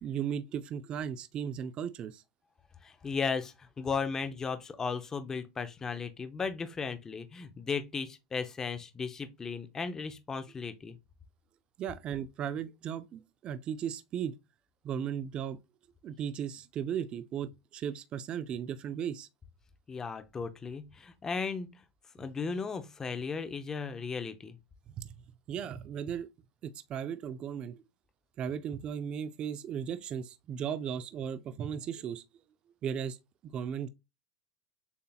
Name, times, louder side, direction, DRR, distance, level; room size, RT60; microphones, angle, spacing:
voice 1, 0.0-2.2 11.8-14.3 14.8-15.6 16.0-19.3 25.0-25.1 25.5-26.3 26.6-27.8 28.4-32.2 32.8-33.2 33.5-33.9, right 8 dB, 35° right, 0.4 m, -36 dB
voice 2, 2.8-11.0 19.9-21.8 22.1-24.6, left 5 dB, 20° left, 0.5 m, -36 dB
6.9 x 2.7 x 2.3 m
supercardioid pair, 135°, 3 cm